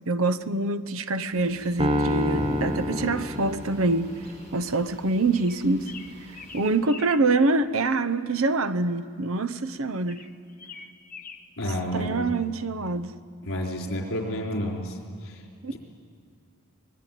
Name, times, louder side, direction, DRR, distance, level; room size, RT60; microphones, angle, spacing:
voice 1, 0.1-4.1 4.5-5.9 6.2-10.2 11.9-13.1 15.6-15.8, right 3 dB, 70° right, 0.8 m, -25 dB
sound 1, 1.3-6.8, equal, 45° right, 5.8 m, -40 dB
Piano, 1.8-4.2, left 1 dB, 25° right, 1.2 m, -27 dB
sound 2, 5.3-7.3 10.1-11.7, left 6 dB, 40° left, 1.1 m, -44 dB
voice 2, 11.6-12.3 13.4-15.4 15.7-15.8, equal, 65° left, 4.2 m, -30 dB
24.5 x 21.0 x 9.2 m
head